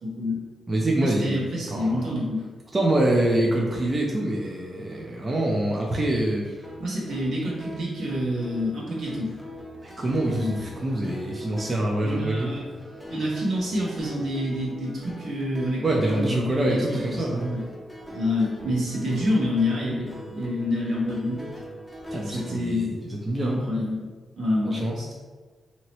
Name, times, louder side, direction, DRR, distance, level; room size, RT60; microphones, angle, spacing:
voice 1, 0.0-0.4 1.0-2.4 6.8-9.3 10.2-10.5 12.0-12.7 13.1-17.6 18.1-21.4 22.2-22.9 23.4-25.1, left 1 dB, 75° right, -5 dB, 1.1 m, -28 dB
voice 2, 0.7-1.4 1.7-2.1 2.7-6.6 9.8-12.5 15.8-17.5 22.1-23.6 24.6-25.0, right 1 dB, 30° right, -2 dB, 0.5 m, -25 dB
sound 1, 6.6-22.5, equal, 10° left, 0.7 m, -42 dB
2.9 x 2.8 x 2.9 m, 1.4 s
cardioid pair, 70°, 0 cm